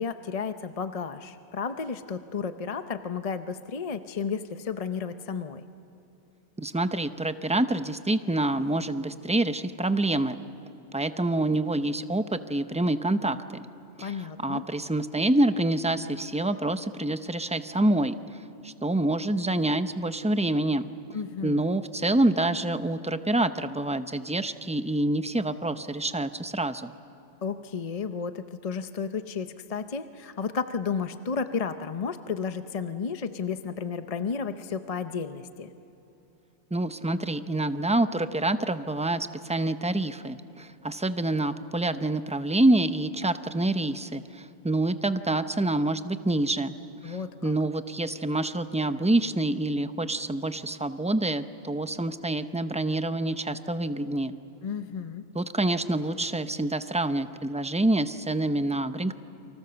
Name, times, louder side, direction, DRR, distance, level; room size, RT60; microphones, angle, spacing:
voice 1, 0.0-5.6 14.0-14.6 21.1-21.7 27.4-35.7 47.0-47.5 54.6-55.3, left 5 dB, 40° left, 9 dB, 0.7 m, -32 dB
voice 2, 6.6-10.4 10.9-13.7 14.0-18.2 18.6-20.9 21.4-26.9 36.7-46.7 47.0-47.2 47.4-54.4 55.3-59.1, right 2 dB, 10° right, 10 dB, 0.5 m, -27 dB
29.5 x 24.5 x 6.9 m, 3.0 s
omnidirectional pair, 1.1 m